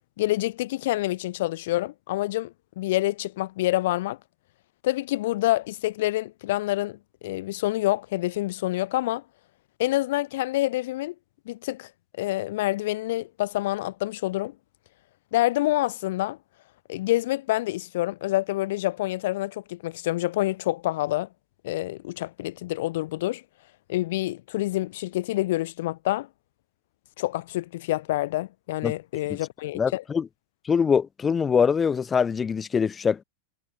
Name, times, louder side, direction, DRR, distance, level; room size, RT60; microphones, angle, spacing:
voice 1, 0.2-4.2 4.8-7.0 7.2-9.2 9.8-11.1 11.5-11.9 12.2-14.5 15.3-16.4 16.9-21.3 21.6-23.4 23.9-26.3 27.2-30.0, left 16 dB, 55° left, 0.4 m, -27 dB
voice 2, 29.7-30.3 30.6-33.2, left 6 dB, 20° left, 0.7 m, -23 dB
figure-of-eight pair, 90°, 0 cm